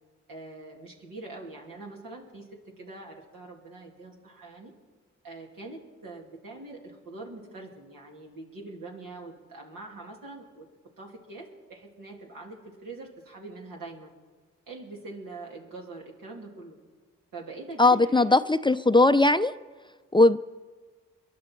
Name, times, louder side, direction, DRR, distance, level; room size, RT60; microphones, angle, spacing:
voice 1, 0.3-4.7 5.2-10.7 11.0-14.1 14.7-16.8 17.3-18.4, right 2 dB, 80° right, -1 dB, 2.8 m, -43 dB
voice 2, 17.8-19.5 20.1-20.4, left 2 dB, 15° left, 12 dB, 0.5 m, -19 dB
22.5 x 11.0 x 4.6 m, 1.5 s
supercardioid pair, 40°, 33 cm